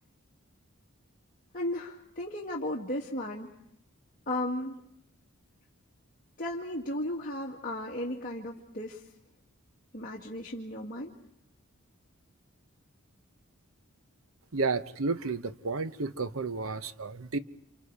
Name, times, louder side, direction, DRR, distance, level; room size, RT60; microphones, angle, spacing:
voice 1, 1.5-3.5 4.3-4.8 6.4-9.0 9.9-11.1, left 1 dB, 40° left, -3 dB, 2.1 m, -35 dB
voice 2, 14.5-17.4, right 3 dB, 70° right, 12 dB, 1.0 m, -32 dB
29.5 x 28.0 x 4.8 m, 0.74 s
head